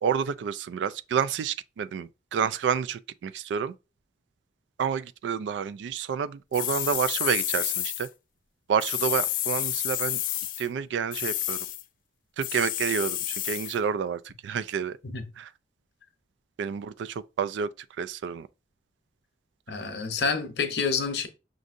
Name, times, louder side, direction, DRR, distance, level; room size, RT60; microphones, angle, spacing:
voice 1, 0.0-3.7 4.8-8.1 8.7-10.2 10.6-11.6 12.4-15.0 15.4-15.5 16.6-17.7 18.0-18.5, right 7 dB, 90° right, 0.3 m, -29 dB
sound 1, 6.5-8.1 8.8-10.7 11.1-11.8 12.4-13.8, left 13 dB, 50° left, 0.3 m, -30 dB
voice 2, 19.7-21.3, left 5 dB, 70° left, 0.7 m, -28 dB
6.1 x 2.6 x 2.5 m
head